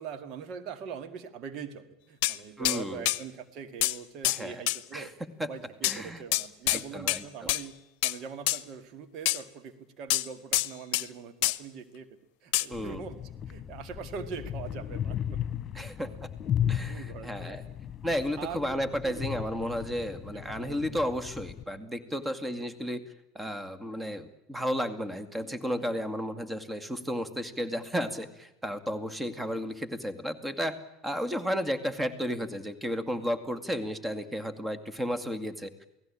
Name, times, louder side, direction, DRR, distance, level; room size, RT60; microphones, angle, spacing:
voice 1, 0.0-5.1 5.4-7.8 8.0-12.1 12.4-13.2 13.5-15.4 15.7-16.3 16.9-17.7 18.4-19.4 19.9-21.1 22.1-22.2, right 6 dB, 50° right, 9 dB, 2.1 m, -43 dB
sound 1, 2.2-2.4 2.7-2.8 3.1-3.2 3.8-4.0 4.2-4.4 4.7-4.8 5.8-6.0 6.3-6.8 7.1-7.2 7.5-7.6 8.0-8.2 8.5-8.6 9.3-9.4 10.1-11.1 11.4-11.6 12.5-12.7, left 16 dB, 60° left, 0.9 m, -26 dB
voice 2, 2.6-3.0 4.2-4.6 4.9-5.1 5.4-5.5 5.8-6.2 6.7-7.5 12.7-13.0 15.7-16.1 16.7-17.6 18.0-23.0 23.3-30.8 31.0-35.9, equal, 10° right, 13 dB, 2.3 m, -33 dB
sound 2, 12.7-21.6, left 9 dB, 35° left, 1.7 m, -35 dB
28.5 x 18.0 x 8.9 m, 0.91 s
figure-of-eight pair, 70°, 0 cm